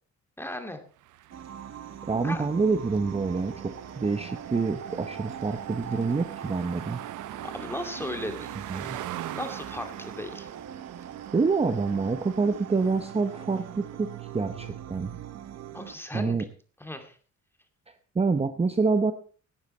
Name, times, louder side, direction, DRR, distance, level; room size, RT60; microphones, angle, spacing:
voice 1, 0.4-0.8 2.2-2.5 7.4-8.8 9.3-10.5 15.7-16.5 16.8-17.2, left 1 dB, 10° left, 6 dB, 2.4 m, -36 dB
sound 1, 1.0-14.0, right 13 dB, 80° right, 0.8 m, -44 dB
sound 2, 1.3-16.0, right 9 dB, 60° right, 1.1 m, -41 dB
voice 2, 2.1-7.0 8.7-9.0 11.3-15.1 16.1-16.5 17.9-19.1, right 4 dB, 20° right, 9 dB, 0.9 m, -27 dB
17.5 x 9.6 x 4.3 m, 0.42 s
cardioid pair, 90°, 30 cm